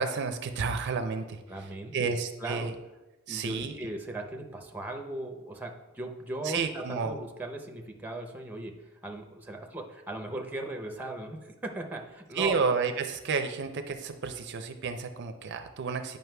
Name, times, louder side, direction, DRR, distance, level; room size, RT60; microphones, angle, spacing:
voice 1, 0.0-1.4 1.9-2.7 3.3-3.7 6.4-7.2 12.4-16.2, right 5 dB, 55° right, 8 dB, 0.4 m, -31 dB
voice 2, 1.5-2.0 2.4-2.7 3.3-12.7, right 2 dB, 10° right, 3 dB, 0.6 m, -38 dB
9.3 x 5.2 x 2.2 m, 1.0 s
head